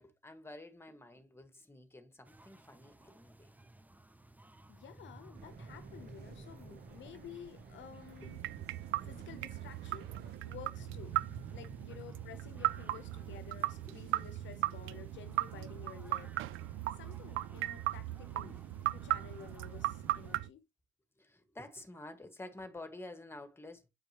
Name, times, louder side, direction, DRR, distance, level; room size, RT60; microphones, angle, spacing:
voice 1, 0.0-3.6 6.0-6.1 6.4-6.8 8.2-8.3 9.0-9.1 13.6-14.0 21.2-23.9, left 2 dB, 10° left, 1.7 m, -50 dB
sound 1, 2.2-20.4, right 2 dB, 10° right, 0.7 m, -54 dB
voice 2, 4.7-8.4 8.8-10.1 10.5-16.3 16.9-18.6 18.9-20.7, left 9 dB, 70° left, 0.8 m, -52 dB
sound 2, 5.3-10.4, right 7 dB, 55° right, 1.0 m, -55 dB
sound 3, 8.2-20.5, right 16 dB, 85° right, 0.4 m, -38 dB
8.6 x 5.1 x 3.0 m
cardioid pair, 90°, 20 cm